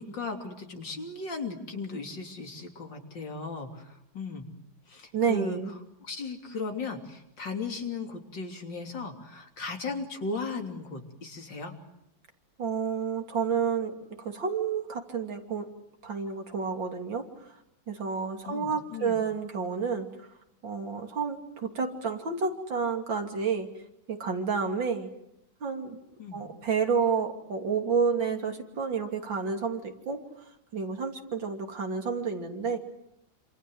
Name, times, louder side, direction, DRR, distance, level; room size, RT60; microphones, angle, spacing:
voice 1, 0.0-4.5 4.9-5.6 6.0-11.8 18.4-19.2 26.2-26.4, left 3 dB, 70° left, 3 dB, 3.8 m, -36 dB
voice 2, 5.1-5.7 12.6-15.7 16.0-17.3 17.9-20.3 20.6-23.7 24.1-25.1 25.6-26.0 26.3-30.2 30.7-32.8, right 5 dB, 75° right, 4 dB, 3.6 m, -30 dB
28.0 x 27.0 x 7.9 m, 0.80 s
omnidirectional pair, 2.1 m